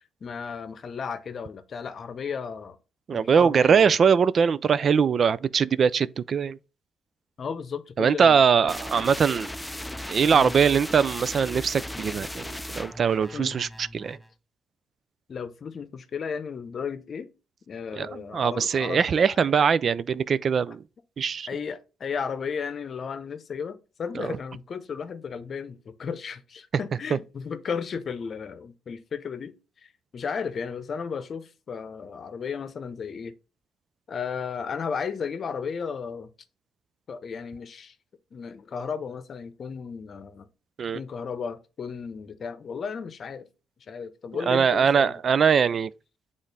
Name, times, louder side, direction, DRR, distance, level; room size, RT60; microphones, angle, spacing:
voice 1, 0.2-2.8 3.1-4.0 7.4-8.7 10.3-10.5 13.3-13.6 15.3-17.3 17.7-19.7 21.5-29.5 29.8-33.3 34.1-36.3 37.1-37.9 38.3-40.5 40.9-43.5 43.9-45.1, left 6 dB, 50° left, 0.8 m, -34 dB
voice 2, 3.1-6.6 8.0-9.5 10.1-14.2 17.9-20.8 21.2-21.5 24.2-24.4 40.8-41.0 44.5-45.9, right 6 dB, 50° right, 0.3 m, -22 dB
sound 1, 8.7-14.3, left 1 dB, 5° left, 0.5 m, -37 dB
8.1 x 3.7 x 4.0 m
cardioid pair, 90°, 0 cm